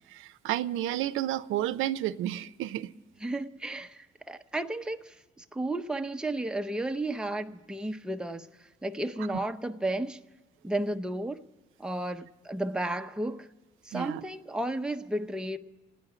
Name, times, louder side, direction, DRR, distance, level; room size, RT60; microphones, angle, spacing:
voice 1, 0.1-2.9 13.9-14.2, right 13 dB, 85° right, 0.5 m, -31 dB
voice 2, 3.2-10.2 10.6-11.4 11.8-13.5 13.8-15.6, right 1 dB, 5° right, 0.6 m, -33 dB
26.0 x 9.6 x 4.9 m
cardioid pair, 90°, 20 cm